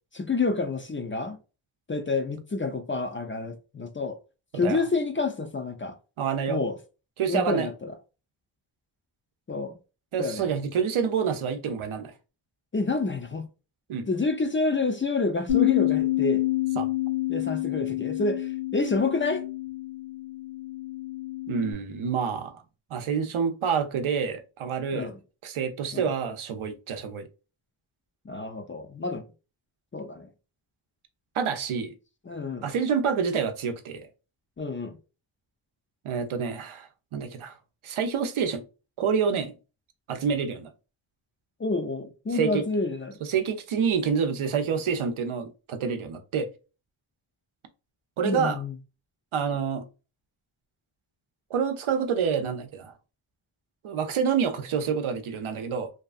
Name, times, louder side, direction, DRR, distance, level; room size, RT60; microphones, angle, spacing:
voice 1, 0.1-1.4 1.9-4.2 4.5-6.0 6.5-6.7 7.3-7.9 9.5-9.8 10.2-10.4 12.7-13.5 14.1-16.4 17.3-19.4 24.9-25.2 25.9-26.1 28.3-29.3 29.9-30.3 32.3-32.7 34.6-35.0 41.6-43.1 48.2-48.7, left 3 dB, 30° left, 0.4 m, -28 dB
voice 2, 6.2-6.6 7.2-7.7 10.1-12.1 13.9-14.1 16.7-16.9 21.5-22.6 22.9-25.1 25.4-27.3 31.3-31.9 32.6-34.1 36.0-37.5 37.8-38.6 39.0-39.5 40.1-40.7 42.3-42.6 43.2-46.5 48.2-48.6 49.3-49.8 51.5-52.9 53.8-55.9, right 6 dB, 85° right, 0.6 m, -27 dB
Bass guitar, 15.5-21.7, left 17 dB, 85° left, 1.1 m, -28 dB
2.7 x 2.4 x 2.4 m
wide cardioid pair, 90°, 48 cm